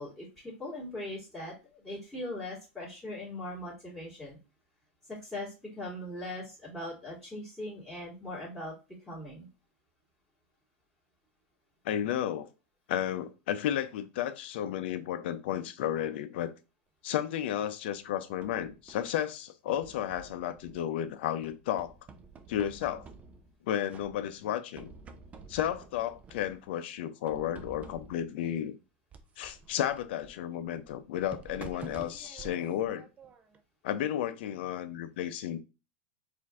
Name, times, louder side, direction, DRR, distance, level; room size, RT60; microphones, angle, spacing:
voice 1, 0.0-4.4 5.1-8.7 9.1-9.5, left 1 dB, 5° left, 2.0 m, -40 dB
voice 2, 11.8-12.5 12.9-16.5 17.0-21.9 22.5-23.1 23.6-24.9 25.5-28.7 29.4-33.1 33.8-35.6, left 11 dB, 70° left, 0.6 m, -33 dB
sound 1, 17.9-19.2 19.7-21.0 21.4-23.6 23.9-24.5 24.7-26.7 27.3-28.3 29.1-33.6, right 4 dB, 25° right, 0.5 m, -50 dB
4.4 x 2.7 x 3.6 m
supercardioid pair, 130°, 6 cm